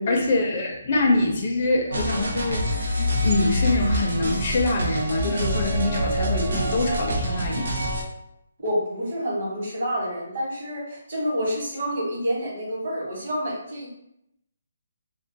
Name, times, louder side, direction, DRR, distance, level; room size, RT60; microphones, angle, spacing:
voice 1, 0.1-7.8, left 2 dB, 35° left, 0 dB, 0.4 m, -24 dB
sound 1, 1.9-8.0, equal, 70° right, 0.6 m, -26 dB
voice 2, 8.6-13.9, equal, 45° right, -4 dB, 1.0 m, -28 dB
2.3 x 2.2 x 2.6 m, 0.77 s
hypercardioid pair, 175°, 0 cm